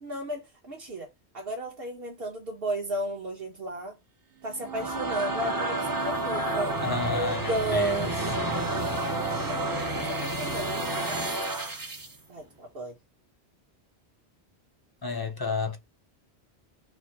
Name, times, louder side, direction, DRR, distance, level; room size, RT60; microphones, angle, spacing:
voice 1, 0.0-1.1 1.3-4.0 4.4-6.7 7.1-11.2 12.3-13.0, right 1 dB, 60° right, 1.3 m, -34 dB
sound 1, 4.4-12.2, right 2 dB, 25° right, 0.6 m, -30 dB
voice 2, 6.8-8.1 15.0-15.8, left 3 dB, 25° left, 0.5 m, -31 dB
4.9 x 2.0 x 4.6 m
omnidirectional pair, 1.1 m